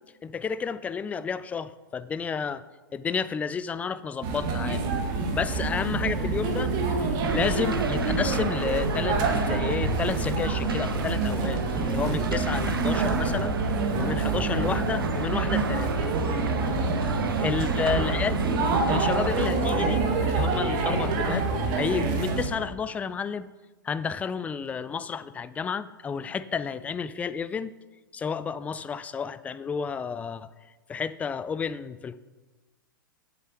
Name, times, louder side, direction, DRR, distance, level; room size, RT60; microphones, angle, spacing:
voice 1, 0.2-2.6 2.9-4.9 5.3-6.7 7.0-16.0 17.4-18.4 18.9-21.5 21.8-23.5 23.8-27.7 28.1-30.5 30.9-32.2, left 6 dB, 10° left, 15 dB, 0.3 m, -31 dB
sound 1, 4.2-22.5, right 3 dB, 40° right, 1.8 m, -26 dB
sound 2, 7.2-19.5, right 5 dB, 85° right, 0.6 m, -35 dB
7.4 x 6.7 x 6.7 m, 1.2 s
hypercardioid pair, 105°, 11 cm